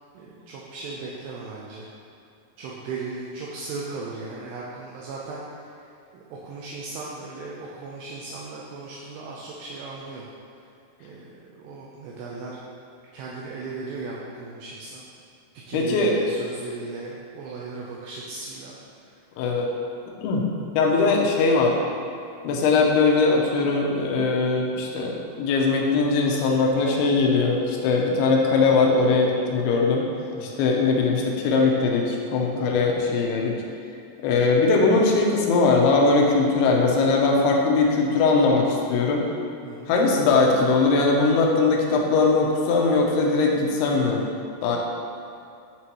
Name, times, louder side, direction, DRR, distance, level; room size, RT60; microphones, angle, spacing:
voice 1, 0.2-1.9 2.6-5.7 6.1-10.3 11.0-12.5 13.1-15.0 15.7-18.8 30.3-30.7 39.6-39.9, right 3 dB, 80° right, -4 dB, 2.6 m, -37 dB
voice 2, 15.7-16.2 19.4-19.7 20.2-20.5 20.7-21.8 22.4-30.1 30.4-33.6 34.2-39.3 39.9-44.2 44.6-44.8, left 3 dB, 80° left, 0 dB, 2.5 m, -20 dB
8.9 x 3.9 x 2.9 m, 2.5 s
omnidirectional pair, 5.0 m